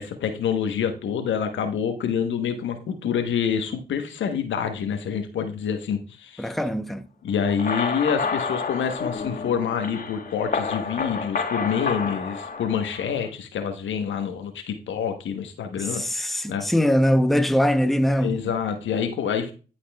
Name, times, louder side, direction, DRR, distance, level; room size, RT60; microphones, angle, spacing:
voice 1, 0.0-6.5 7.2-16.0 16.5-16.7 18.2-19.5, left 7 dB, 75° left, 1.0 m, -27 dB
voice 2, 6.4-7.0 16.0-18.4, equal, ahead, 0.7 m, -22 dB
sound 1, 7.4-13.2, left 5 dB, 45° left, 1.2 m, -29 dB
11.5 x 4.2 x 2.2 m
hypercardioid pair, 40°, 20 cm